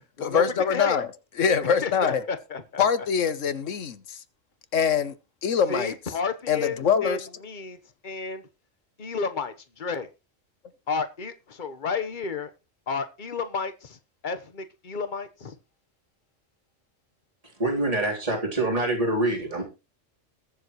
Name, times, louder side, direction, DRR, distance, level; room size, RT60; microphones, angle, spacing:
voice 1, 0.2-1.1 1.4-2.2 2.8-4.2 4.7-5.1 5.4-5.9 6.5-7.3, left 7 dB, 75° left, 1.4 m, -24 dB
voice 2, 0.7-1.0 1.6-2.8 5.7-7.2 7.4-7.8 8.0-8.4 9.0-10.1 10.9-12.5 12.9-14.0 14.2-15.5, left 4 dB, 40° left, 1.3 m, -31 dB
voice 3, 17.6-19.6, right 2 dB, 30° right, 3.8 m, -25 dB
21.5 x 7.3 x 3.1 m
omnidirectional pair, 1.3 m